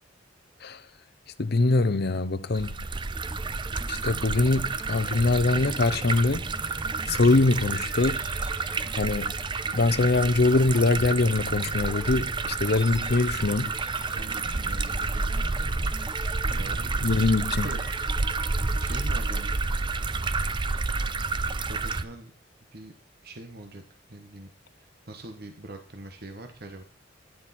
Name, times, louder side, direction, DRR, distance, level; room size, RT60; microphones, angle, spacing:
voice 1, 1.4-2.8 3.9-6.4 7.0-8.2 9.0-9.4 9.7-13.7 17.0-17.7, left 3 dB, 55° left, 0.7 m, -23 dB
sound 1, 2.5-22.0, right 3 dB, 25° right, 0.5 m, -30 dB
sound 2, 3.1-19.6, equal, 5° right, 0.8 m, -45 dB
voice 2, 14.1-15.8 16.1-17.3 17.6-17.8 18.8-19.5 20.1-20.4 21.5-22.3 22.7-22.9 23.2-23.8 24.1-26.8, right 2 dB, 55° right, 1.3 m, -43 dB
12.0 x 10.5 x 4.3 m
head